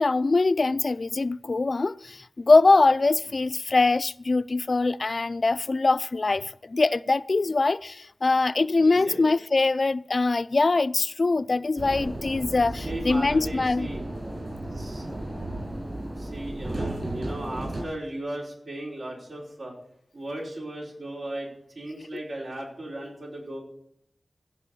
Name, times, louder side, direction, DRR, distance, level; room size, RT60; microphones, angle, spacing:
voice 1, 0.0-13.9 22.1-22.2, left 3 dB, 55° left, 0.4 m, -23 dB
voice 2, 8.8-9.2 12.8-14.0 14.8-15.0 16.2-19.7 20.1-21.5 21.7-23.6, right 1 dB, 85° right, 4.7 m, -36 dB
sound 1, 11.8-17.8, right 1 dB, 55° right, 6.8 m, -34 dB
15.5 x 5.5 x 8.4 m
wide cardioid pair, 70°, 0 cm